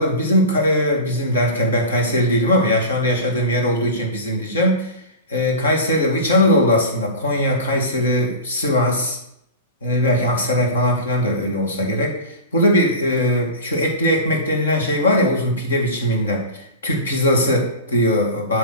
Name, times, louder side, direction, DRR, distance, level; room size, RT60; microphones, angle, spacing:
voice 1, 0.0-5.0 5.3-9.2 9.8-18.6, left 1 dB, 85° left, 0 dB, 2.0 m, -20 dB
7.9 x 3.2 x 6.3 m, 0.77 s
hypercardioid pair, 110°, 0 cm